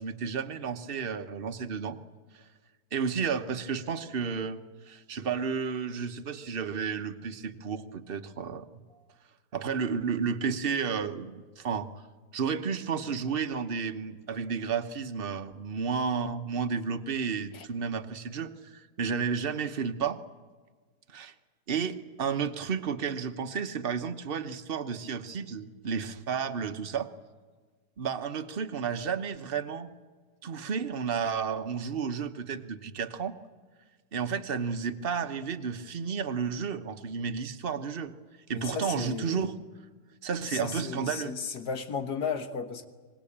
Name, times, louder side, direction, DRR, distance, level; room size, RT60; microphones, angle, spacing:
voice 1, 0.0-2.0 2.3-2.4 2.9-4.6 4.8-8.6 9.5-11.9 12.3-20.2 21.1-21.3 21.7-27.1 28.0-29.9 30.4-33.3 34.1-38.1 38.5-39.5 40.2-41.4, right 6 dB, 40° right, 0.9 m, -32 dB
voice 2, 38.5-39.5 40.4-42.9, left 6 dB, 60° left, 1.9 m, -35 dB
24.5 x 20.5 x 8.7 m
omnidirectional pair, 2.1 m